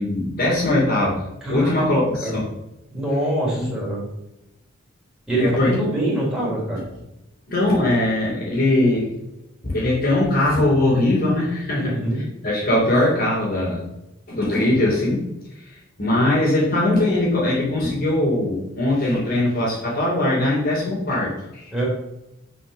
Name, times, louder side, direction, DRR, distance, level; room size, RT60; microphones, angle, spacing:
voice 1, 0.0-2.5 3.5-3.7 5.4-5.7 7.5-9.1 9.6-13.9 14.3-15.3 15.6-15.7 16.0-21.7, left 1 dB, 45° left, -9 dB, 3.4 m, -21 dB
voice 2, 1.4-2.3 2.9-4.1 5.3-6.8 11.8-12.2 21.7-21.9, right 1 dB, 5° right, -5 dB, 3.8 m, -25 dB
7.5 x 6.0 x 6.7 m, 0.89 s
head